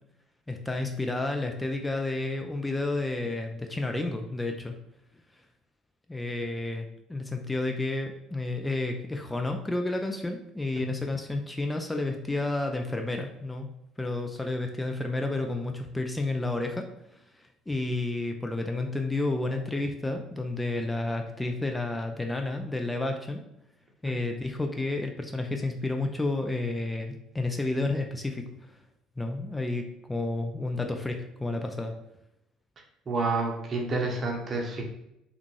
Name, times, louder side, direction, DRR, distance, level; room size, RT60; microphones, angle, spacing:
voice 1, 0.5-4.8 6.1-13.7 14.0-16.8 17.1-23.4 24.0-28.8 29.2-31.9, left 2 dB, 15° left, 4 dB, 0.4 m, -31 dB
voice 2, 33.1-34.8, right 3 dB, 40° right, 2 dB, 0.8 m, -29 dB
3.5 x 2.4 x 3.2 m, 0.84 s
hypercardioid pair, 60°, 0 cm